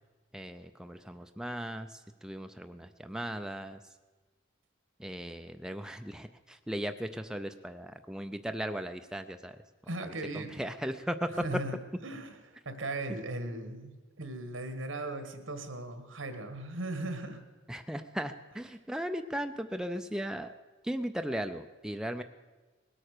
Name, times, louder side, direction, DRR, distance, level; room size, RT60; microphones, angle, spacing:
voice 1, 0.3-3.8 5.0-9.6 10.0-11.3 17.7-20.6 20.8-22.2, equal, 5° right, 7 dB, 0.4 m, -37 dB
voice 2, 9.9-10.6 11.4-11.7 12.0-17.4, right 2 dB, 75° right, 8 dB, 1.7 m, -38 dB
20.0 x 8.7 x 6.6 m, 1.2 s
head